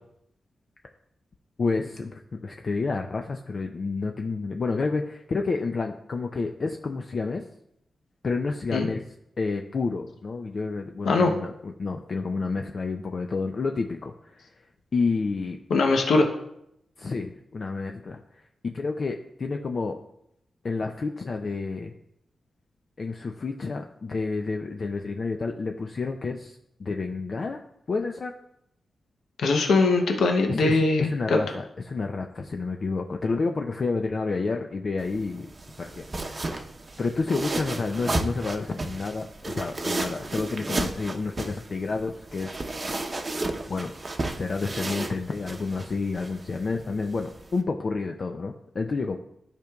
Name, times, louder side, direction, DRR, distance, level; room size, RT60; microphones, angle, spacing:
voice 1, 1.6-7.4 8.2-9.0 9.4-14.4 14.9-15.6 17.0-20.0 20.6-21.9 23.0-27.6 27.9-28.3 30.6-35.5 35.8-36.6 37.0-42.7 43.7-43.9 44.4-49.2, left 4 dB, 50° left, 4 dB, 0.5 m, -30 dB
voice 2, 15.7-16.3 29.4-31.4, left 3 dB, 90° left, 2 dB, 0.8 m, -21 dB
sound 1, 35.0-47.6, right 2 dB, 35° right, 0.8 m, -33 dB
14.5 x 5.2 x 2.3 m, 0.79 s
wide cardioid pair, 100°, 0 cm